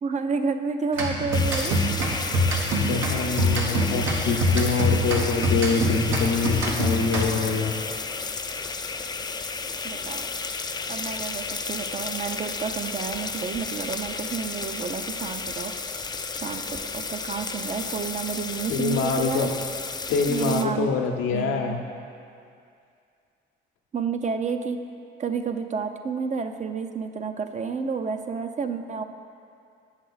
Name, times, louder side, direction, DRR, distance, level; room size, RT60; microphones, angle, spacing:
voice 1, 0.0-1.8 9.8-10.3 10.9-15.7 16.3-19.5 20.3-20.9 21.3-21.8 23.9-24.8 25.2-29.0, right 5 dB, 35° right, 7 dB, 0.5 m, -30 dB
sound 1, 0.9-7.6, equal, 85° right, 1.2 m, -25 dB
sound 2, 1.3-20.7, left 4 dB, 20° left, 0.4 m, -32 dB
voice 2, 2.8-7.7 18.7-19.5 20.1-21.8, left 5 dB, 85° left, 3 dB, 0.8 m, -25 dB
8.3 x 6.4 x 4.0 m, 2.4 s
cardioid pair, 90°, 20 cm